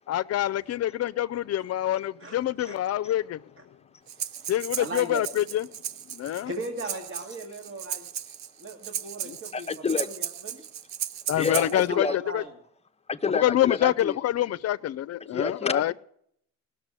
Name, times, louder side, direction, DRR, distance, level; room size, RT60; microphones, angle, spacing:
voice 1, 0.1-3.4 4.5-5.7 6.1-6.5 9.3-9.4 11.3-12.1 12.3-12.4 13.4-15.9, left 13 dB, 55° left, 0.6 m, -26 dB
voice 2, 4.1-4.5 4.8-5.2 6.5-8.1 8.6-9.7 9.9-10.7 11.4-11.5 11.9-12.5, right 2 dB, 40° right, 2.0 m, -38 dB
Breathing, 4.1-11.9, right 10 dB, 65° right, 0.7 m, -36 dB
voice 3, 9.5-10.1 11.4-12.2 13.1-14.2 15.3-15.9, left 4 dB, 20° left, 0.8 m, -29 dB
18.0 x 6.9 x 9.8 m
cardioid pair, 90°, 30 cm